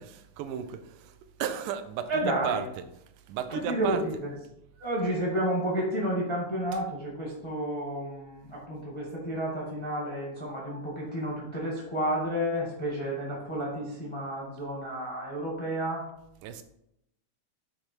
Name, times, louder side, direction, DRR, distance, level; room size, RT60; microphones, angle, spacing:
voice 1, 0.0-2.1 2.4-2.6 3.3-4.0 16.4-16.6, right 9 dB, 85° right, 2.1 m, -34 dB
voice 2, 2.1-2.6 3.5-4.3 4.8-16.0, right 1 dB, 25° left, 0.6 m, -31 dB
8.5 x 3.2 x 4.4 m
omnidirectional pair, 3.6 m